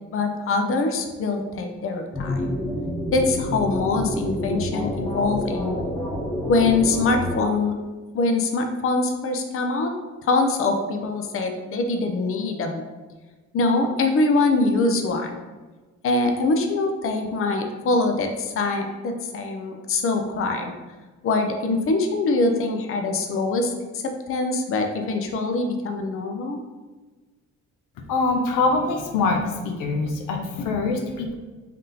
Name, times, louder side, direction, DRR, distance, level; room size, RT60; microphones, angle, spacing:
voice 1, 0.1-2.5 3.1-5.9 6.5-7.7 8.1-9.9 10.2-12.8 13.5-15.4 16.0-20.7 21.2-23.7 24.0-26.6, left 3 dB, 45° left, 4 dB, 0.6 m, -23 dB
sound 1, 2.1-7.4, left 1 dB, 15° left, 1.1 m, -28 dB
voice 2, 28.1-31.4, left 3 dB, 85° left, 3 dB, 0.6 m, -24 dB
3.5 x 2.7 x 3.9 m, 1.3 s
cardioid pair, 90°, 30 cm